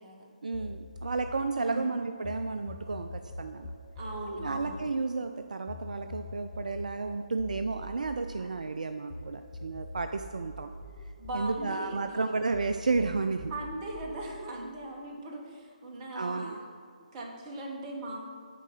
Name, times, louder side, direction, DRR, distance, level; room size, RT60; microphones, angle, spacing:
voice 1, 0.4-3.7 4.4-10.7 11.3-13.5 16.1-16.6, right 3 dB, 65° right, 7 dB, 0.3 m, -32 dB
sound 1, 0.5-2.4 2.7-9.2 9.5-12.2 12.5-14.2, left 2 dB, 40° left, 1.1 m, -43 dB
voice 2, 1.5-1.9 4.0-4.9 8.4-8.5 11.2-12.2 13.5-16.6 17.1-18.2, right 1 dB, 25° right, -1 dB, 1.1 m, -39 dB
9.0 x 3.8 x 6.4 m, 2.1 s
figure-of-eight pair, 145°, 4 cm